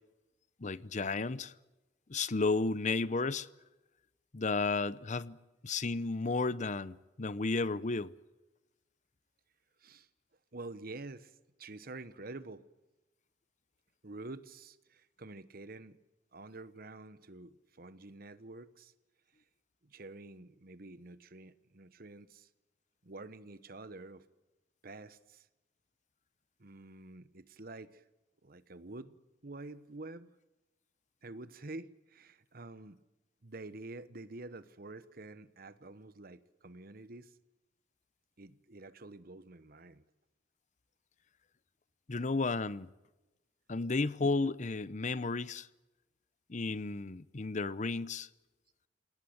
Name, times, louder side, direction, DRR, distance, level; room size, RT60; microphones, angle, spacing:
voice 1, 0.6-1.5 2.1-3.5 4.3-5.4 5.6-8.1 42.1-42.9 43.7-45.7 46.5-48.3, left 3 dB, 40° left, 0.7 m, -33 dB
voice 2, 10.5-12.6 14.0-16.0 16.3-18.9 19.8-22.5 23.0-24.2 24.8-25.4 26.6-28.0 28.4-29.2 29.4-30.3 31.2-33.0 33.4-37.3 38.4-40.0, right 2 dB, 55° right, 1.2 m, -48 dB
28.0 x 18.5 x 8.0 m
head